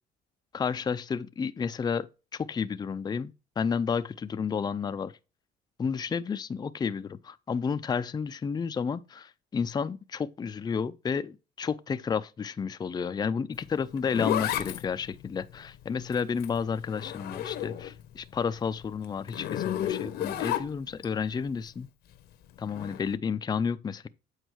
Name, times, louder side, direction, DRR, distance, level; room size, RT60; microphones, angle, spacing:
voice 1, 0.5-2.1 2.3-5.1 5.8-21.9 22.6-24.1, left 6 dB, 25° left, 0.5 m, -31 dB
Zipper (clothing), 13.6-18.1 18.4-21.1 22.7-23.0, left 11 dB, 70° left, 1.0 m, -33 dB
8.2 x 4.5 x 4.5 m
cardioid pair, 110°, 17 cm